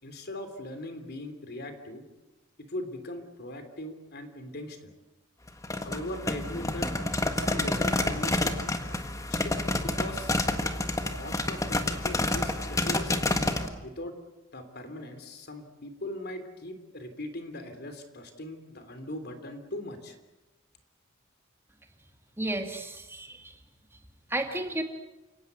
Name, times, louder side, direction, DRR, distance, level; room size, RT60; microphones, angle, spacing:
voice 1, 0.0-2.0 2.6-4.9 5.8-6.9 7.4-8.5 9.4-9.5 9.8-10.3 11.0-13.4 13.8-14.1 14.5-20.1, left 1 dB, 55° left, 8 dB, 3.1 m, -40 dB
sound 1, 5.5-13.7, left 2 dB, 15° left, 1.6 m, -29 dB
voice 2, 22.4-23.6 24.3-24.8, right 1 dB, 10° right, 4 dB, 2.1 m, -32 dB
29.5 x 18.0 x 8.1 m, 1.0 s
head